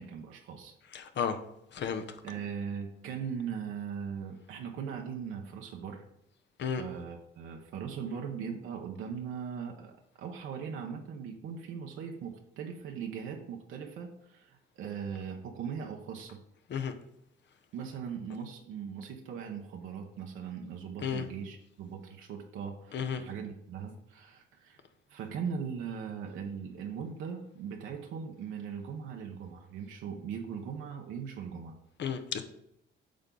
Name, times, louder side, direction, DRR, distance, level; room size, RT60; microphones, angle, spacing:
voice 1, 0.0-0.8 2.2-6.0 6.8-9.9 10.2-16.4 17.7-24.8 25.1-31.7, right 7 dB, 90° right, 1.0 m, -39 dB
voice 2, 0.9-1.4 1.7-2.2 6.6-6.8 16.7-16.9 21.0-21.3 22.9-23.2 32.0-32.4, left 7 dB, 65° left, 0.9 m, -33 dB
8.7 x 5.6 x 3.9 m
cardioid pair, 90°, 20 cm